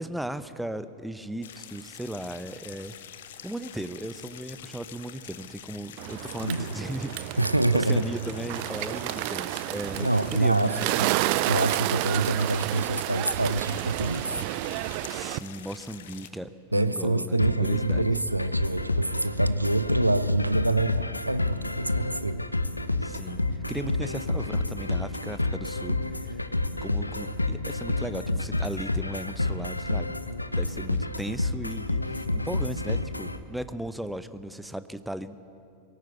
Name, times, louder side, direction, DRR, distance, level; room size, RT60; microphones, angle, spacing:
voice 1, 0.0-3.0 3.4-7.4 7.7-11.1 15.1-18.1 23.0-26.4 26.8-30.1 30.6-35.4, right 1 dB, 5° right, 13 dB, 0.8 m, -37 dB
sound 1, 1.4-16.3, left 10 dB, 60° left, 1.0 m, -46 dB
Bird, 6.0-15.4, right 18 dB, 45° right, 0.5 m, -30 dB
voice 2, 7.4-8.1 10.0-11.1 11.5-14.4 16.7-22.4 26.1-26.2 32.8-32.9, right 2 dB, 85° right, 13 dB, 0.6 m, -26 dB
sound 2, 17.4-33.4, left 2 dB, 85° left, 0.8 m, -29 dB
23.0 x 17.0 x 8.3 m, 2.7 s
figure-of-eight pair, 90°, 0 cm